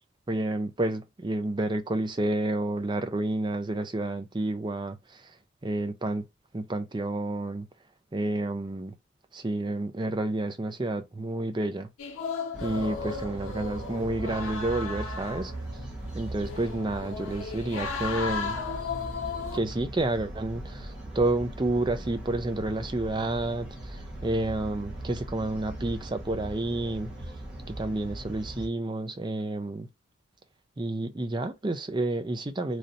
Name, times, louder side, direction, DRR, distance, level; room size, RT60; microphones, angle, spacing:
voice 1, 0.3-5.0 5.6-6.2 6.5-7.7 8.1-8.9 9.3-11.9 12.6-15.5 16.2-18.6 19.5-23.7 24.2-27.1 27.7-29.9 30.8-32.8, right 2 dB, 20° right, 0.4 m, -30 dB
sound 1, 12.0-19.6, left 5 dB, 75° left, 0.7 m, -35 dB
sound 2, 12.5-28.7, right 1 dB, 5° right, 1.1 m, -39 dB
3.2 x 2.7 x 4.0 m
head